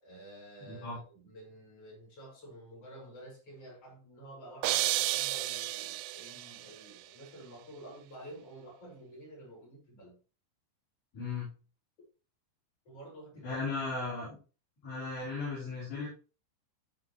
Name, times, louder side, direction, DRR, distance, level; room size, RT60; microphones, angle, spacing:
voice 1, 0.0-10.2 12.8-13.8, right 1 dB, 35° left, -3 dB, 6.1 m, -50 dB
voice 2, 0.6-1.0 11.1-11.5 13.4-14.4 14.8-16.1, left 4 dB, 60° left, -9 dB, 6.2 m, -36 dB
sound 1, 4.6-6.7, right 16 dB, 85° right, 2.6 m, -32 dB
15.5 x 5.6 x 3.2 m, 0.36 s
omnidirectional pair, 5.0 m